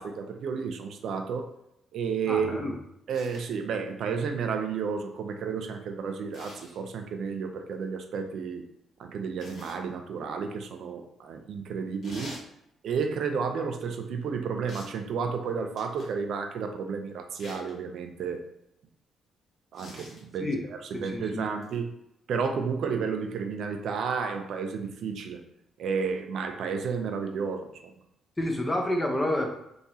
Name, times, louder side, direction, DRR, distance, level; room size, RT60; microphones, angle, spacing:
voice 1, 0.0-1.5 1.9-2.7 3.1-8.6 9.0-12.4 12.8-18.4 19.7-21.9 22.3-25.4 25.8-27.9, right 5 dB, 70° right, 5 dB, 0.4 m, -32 dB
voice 2, 2.3-2.7 20.4-20.6 20.9-21.5 28.4-29.5, left 1 dB, 20° left, 2 dB, 0.7 m, -29 dB
sound 1, 3.1-3.5 6.3-6.8 9.4-9.8 12.0-12.5 14.7-15.0 15.8-16.2 17.4-17.7 19.7-20.2 21.6-21.8, left 1 dB, 55° left, 1.1 m, -45 dB
3.6 x 2.9 x 2.6 m, 0.82 s
cardioid pair, 90°, 0 cm